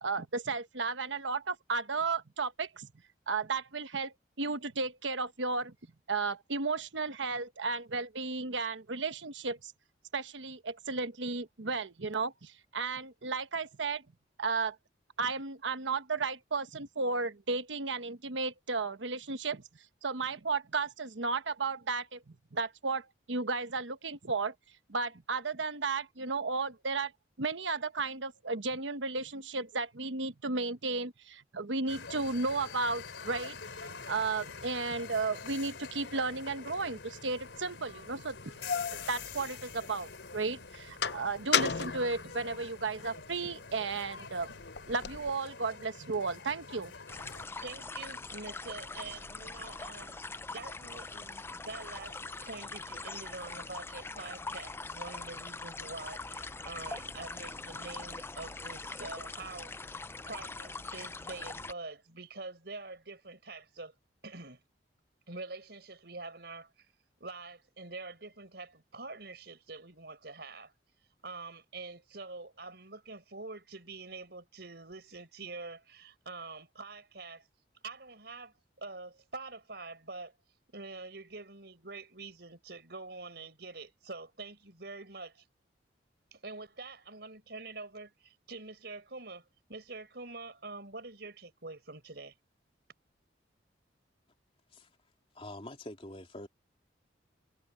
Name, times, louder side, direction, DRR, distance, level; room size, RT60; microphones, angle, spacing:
voice 1, 0.0-2.9 3.3-5.7 6.1-9.7 10.1-14.0 14.4-14.8 15.2-19.6 20.0-24.5 24.9-27.1 27.4-38.4 38.9-44.6 44.9-46.9, right 4 dB, 90° right, 1.2 m, -34 dB
sound 1, 31.9-47.5, left 5 dB, 80° left, 3.3 m, -46 dB
sound 2, 37.5-37.6 38.3-40.1 40.5-43.1 43.5-45.3, left 7 dB, 65° left, 0.8 m, -35 dB
sound 3, 47.1-61.7, left 3 dB, 15° left, 0.4 m, -42 dB
voice 2, 47.6-50.2 50.5-59.7 60.3-63.9 64.2-64.6 65.3-66.9 67.2-70.7 71.2-77.4 77.8-80.3 80.7-85.4 86.3-92.3, right 3 dB, 60° right, 5.1 m, -45 dB
voice 3, 95.3-96.5, left 1 dB, 30° left, 3.0 m, -45 dB
head